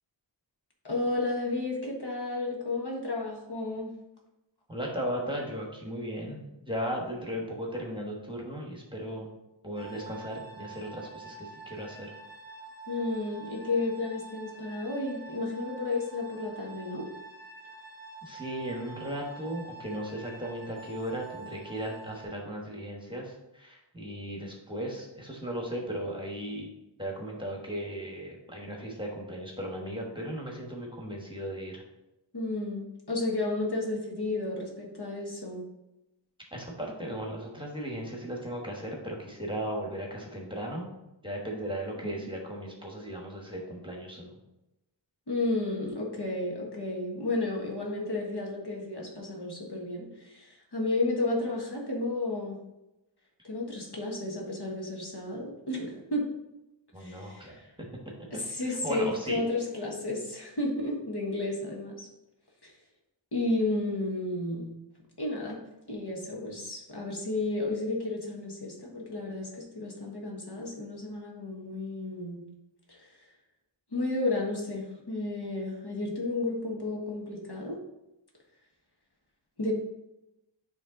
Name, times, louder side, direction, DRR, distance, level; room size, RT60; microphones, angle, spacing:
voice 1, 0.8-3.9 12.9-17.1 32.3-35.7 42.0-42.3 45.3-52.6 53.4-56.2 57.0-57.7 58.3-62.1 62.6-62.7 63.3-64.7 65.2-65.6 65.9-72.4 72.9-73.1 73.9-77.8 79.6-79.7, left 2 dB, 60° left, -2 dB, 1.4 m, -32 dB
voice 2, 4.7-9.3 9.6-12.1 18.2-26.7 27.0-31.8 36.5-40.9 41.2-44.4 56.9-57.6 58.6-59.4, equal, 10° right, -1 dB, 1.3 m, -36 dB
sound 1, 9.8-22.3, right 4 dB, 75° left, 1.5 m, -47 dB
8.4 x 3.2 x 3.8 m, 0.94 s
wide cardioid pair, 50°, 45 cm